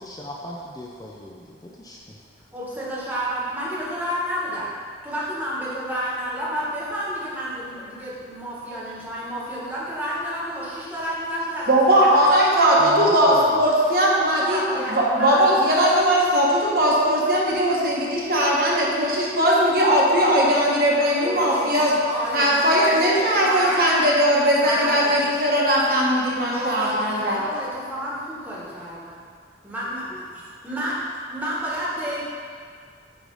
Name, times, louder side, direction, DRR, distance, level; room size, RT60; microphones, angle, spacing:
voice 1, 0.0-1.4 1.8-2.0 12.8-13.7, equal, 20° left, -3 dB, 0.5 m, -33 dB
voice 2, 2.5-4.7 5.0-12.2 14.3-15.5 21.2-23.8 24.6-25.2 26.4-29.2 29.6-31.0 31.3-32.3, equal, 10° right, -8 dB, 1.4 m, -30 dB
voice 3, 11.7-14.6 14.9-21.9 22.3-27.4, equal, 50° right, -4 dB, 1.2 m, -19 dB
8.6 x 3.3 x 5.3 m, 2.1 s
head